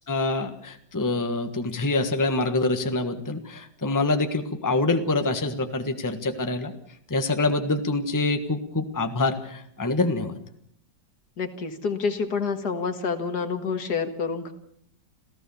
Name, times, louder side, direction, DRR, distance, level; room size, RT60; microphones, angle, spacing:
voice 1, 0.1-6.7 7.1-10.3, left 2 dB, 10° left, 7 dB, 1.4 m, -25 dB
voice 2, 11.4-14.5, left 5 dB, 65° left, 8 dB, 2.2 m, -28 dB
28.0 x 15.5 x 7.1 m, 0.70 s
omnidirectional pair, 1.9 m